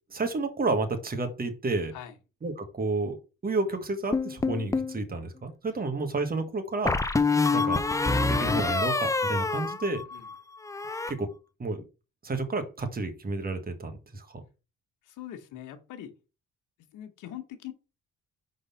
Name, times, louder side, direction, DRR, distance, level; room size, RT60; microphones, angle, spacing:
voice 1, 0.1-1.9 2.4-3.2 3.4-7.0 7.5-7.8 8.1-10.0 11.1-11.3 11.6-11.8 12.2-14.4, right 3 dB, 30° right, 1.5 m, -31 dB
sound 1, 4.1-5.0 6.9-10.4 10.6-11.1, left 3 dB, 10° left, 0.5 m, -26 dB
voice 2, 15.0-16.1 16.9-17.7, left 11 dB, 90° left, 1.1 m, -42 dB
5.0 x 4.0 x 5.5 m
cardioid pair, 90°, 30 cm